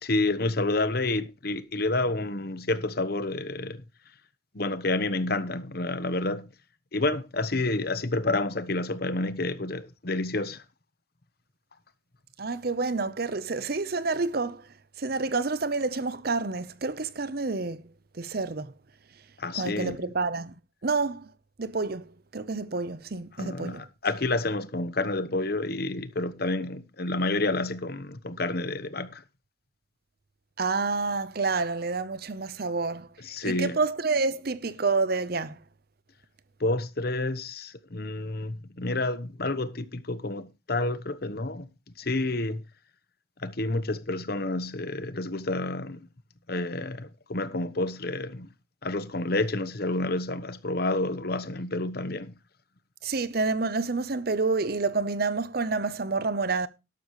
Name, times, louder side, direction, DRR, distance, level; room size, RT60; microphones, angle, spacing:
voice 1, 0.0-3.8 4.5-6.5 6.9-10.6 19.4-20.1 23.4-29.2 33.2-33.8 36.6-41.7 42.0-42.6 43.4-46.0 46.5-48.5 48.8-52.3, left 2 dB, 50° left, 1.0 m, -29 dB
voice 2, 12.4-14.7 15.0-17.8 18.1-18.7 19.5-20.5 20.8-21.3 21.6-23.9 30.6-33.1 33.4-35.6 53.0-56.7, right 3 dB, 50° right, 0.8 m, -28 dB
12.0 x 12.0 x 3.1 m
head